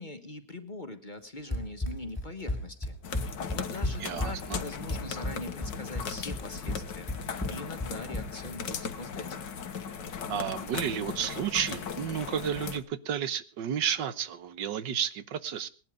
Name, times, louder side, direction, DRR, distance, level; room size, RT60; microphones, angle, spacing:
voice 1, 0.0-3.0 3.5-9.4, left 2 dB, 30° left, 7 dB, 1.3 m, -42 dB
Run, 1.5-8.5, left 1 dB, 5° left, 1.8 m, -34 dB
sound 1, 3.0-12.8, left 6 dB, 85° left, 1.9 m, -38 dB
voice 2, 4.0-4.6 10.3-15.7, right 9 dB, 85° right, 13 dB, 1.7 m, -32 dB
19.5 x 12.0 x 4.9 m, 0.35 s
omnidirectional pair, 1.9 m